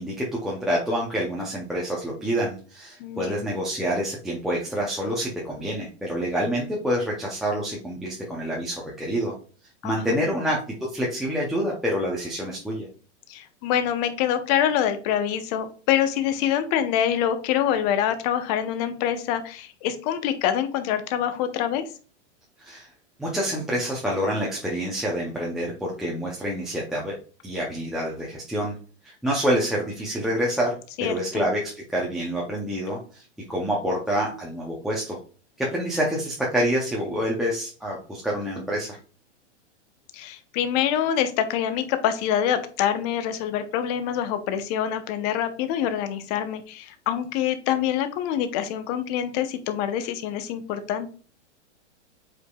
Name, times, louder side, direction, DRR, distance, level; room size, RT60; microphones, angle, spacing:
voice 1, 0.0-9.3 9.8-12.9 22.6-22.9 23.2-27.1 27.4-28.8 29.0-35.2 35.6-39.0, equal, ahead, -4 dB, 0.6 m, -27 dB
voice 2, 3.0-3.5 9.8-10.2 13.3-21.9 31.0-31.5 40.1-51.1, left 10 dB, 35° left, 10 dB, 0.8 m, -25 dB
8.2 x 4.9 x 2.3 m, 0.39 s
supercardioid pair, 155°, 36 cm